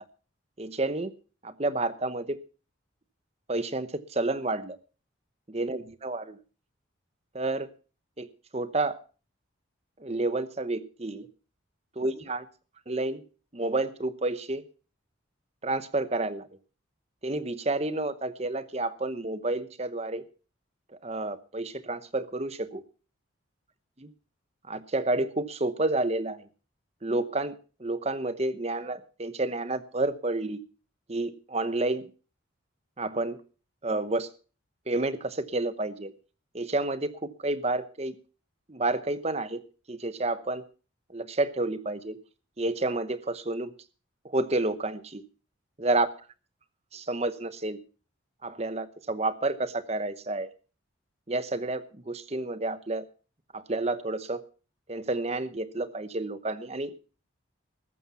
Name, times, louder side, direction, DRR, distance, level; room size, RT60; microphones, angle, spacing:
voice 1, 0.6-1.1 1.4-2.4 3.5-4.8 5.5-6.4 7.3-7.7 8.2-8.3 8.5-9.0 10.0-11.3 12.0-12.4 12.9-13.2 13.5-14.6 15.6-16.5 17.2-20.2 21.0-22.8 24.7-26.5 27.0-30.6 31.1-32.1 33.0-33.4 33.8-34.3 34.9-36.1 36.5-37.1 37.4-38.1 38.7-39.6 39.9-40.6 41.1-42.2 42.6-43.7 44.2-45.2 45.8-46.1 46.9-47.8 48.4-50.5 51.3-53.0 53.5-54.4 54.9-56.9, right 2 dB, 30° right, 13 dB, 0.9 m, -30 dB
14.0 x 11.5 x 5.6 m, 0.38 s
head